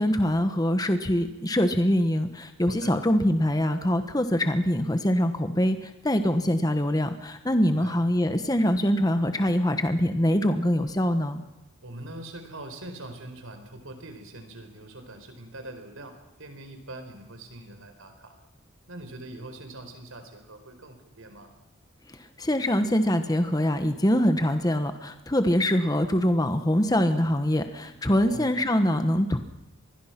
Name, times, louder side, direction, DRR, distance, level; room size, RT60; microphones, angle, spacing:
voice 1, 0.0-11.4 22.4-29.4, equal, 20° left, 8 dB, 1.1 m, -24 dB
voice 2, 2.7-3.0 7.7-7.9 11.8-18.3 18.9-21.5 28.2-28.5, right 1 dB, 80° right, 7 dB, 4.5 m, -43 dB
26.5 x 21.0 x 5.9 m, 0.97 s
head